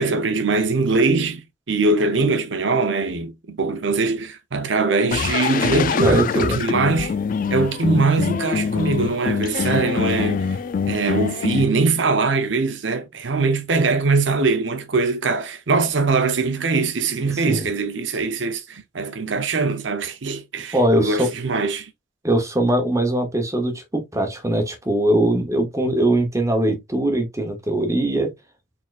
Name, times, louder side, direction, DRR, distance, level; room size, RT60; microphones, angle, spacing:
voice 1, 0.0-1.4 1.7-7.1 7.5-10.6 10.9-21.9, right 3 dB, 70° right, 0.7 m, -22 dB
sound 1, 5.1-11.6, left 6 dB, 45° left, 0.3 m, -24 dB
voice 2, 6.0-6.6 17.3-17.7 20.7-21.3 22.2-28.3, right 1 dB, 15° right, 0.9 m, -21 dB
4.3 x 3.7 x 2.4 m
head